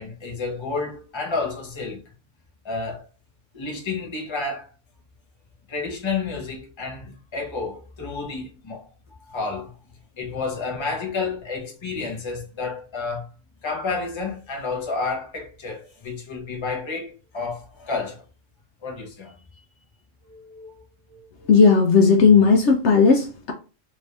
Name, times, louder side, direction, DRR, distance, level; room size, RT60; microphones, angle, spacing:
voice 1, 0.0-2.0 2.6-3.0 3.5-4.7 5.7-8.9 9.3-9.7 10.2-13.3 13.6-18.2 18.8-19.4 20.2-20.7 21.1-21.3, left 4 dB, 25° left, 0.8 m, -30 dB
voice 2, 21.5-23.5, left 5 dB, 65° left, 0.9 m, -15 dB
3.2 x 2.6 x 3.3 m
omnidirectional pair, 1.3 m